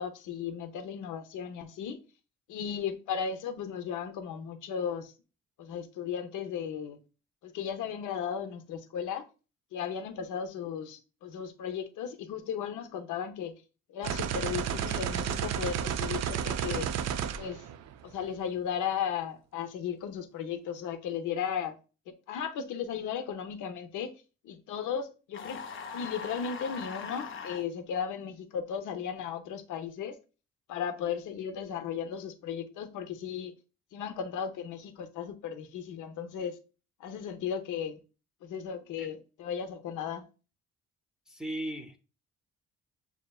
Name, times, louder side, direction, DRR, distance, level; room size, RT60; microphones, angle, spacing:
voice 1, 0.0-2.0 2.5-5.1 5.6-7.0 7.4-9.3 9.7-13.5 13.9-16.9 17.4-17.6 18.0-21.7 22.3-24.1 24.4-25.6 25.9-30.2 30.7-33.5 33.9-36.6 37.0-38.0 38.4-40.3, left 7 dB, 80° left, 0.7 m, -35 dB
sound 1, 14.0-18.2, right 8 dB, 60° right, 0.4 m, -32 dB
sound 2, 25.3-27.6, left 5 dB, 40° left, 0.5 m, -40 dB
voice 2, 41.3-42.0, right 1 dB, ahead, 0.6 m, -37 dB
6.5 x 2.8 x 2.3 m
cardioid pair, 90°, 30 cm